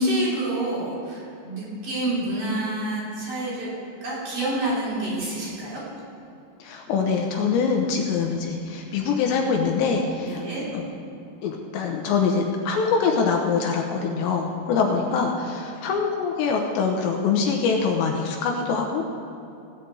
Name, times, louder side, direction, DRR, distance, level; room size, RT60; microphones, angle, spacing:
voice 1, 0.0-3.7 4.0-5.8 10.2-10.7 15.7-15.8, right 1 dB, 50° right, -8 dB, 4.8 m, -28 dB
voice 2, 6.6-10.4 10.7-10.8 11.4-19.0, left 5 dB, 75° left, 1 dB, 3.0 m, -24 dB
17.0 x 5.8 x 8.0 m, 2.7 s
omnidirectional pair, 5.3 m